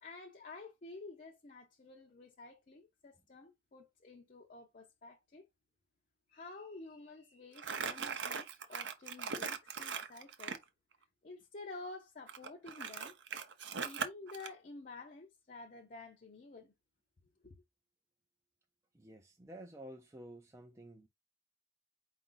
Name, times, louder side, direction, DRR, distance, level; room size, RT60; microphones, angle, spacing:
voice 1, 0.0-5.5 6.3-10.6 11.2-13.2 13.8-16.7 17.4-17.5, left 3 dB, 40° left, 0.6 m, -51 dB
Crumpling crinkling, 7.6-10.6 12.3-14.5, right 6 dB, 65° right, 0.6 m, -40 dB
voice 2, 18.9-21.1, right 1 dB, 15° right, 0.4 m, -51 dB
4.8 x 2.5 x 3.8 m
head